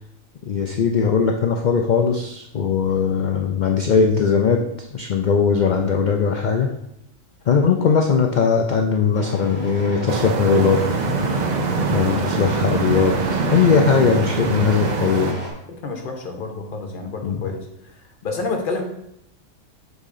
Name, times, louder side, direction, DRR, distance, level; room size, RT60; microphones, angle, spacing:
voice 1, 0.5-6.7 7.5-10.9 11.9-15.4 17.2-17.4, left 5 dB, 70° left, 3 dB, 0.4 m, -19 dB
sound 1, 9.1-15.5, right 1 dB, 10° right, 1.6 m, -34 dB
sound 2, 10.1-15.3, right 4 dB, 60° right, 0.4 m, -23 dB
voice 2, 15.7-17.6 18.2-18.8, left 3 dB, 45° left, 3 dB, 1.0 m, -28 dB
6.7 x 4.1 x 3.6 m, 0.79 s
omnidirectional pair, 1.4 m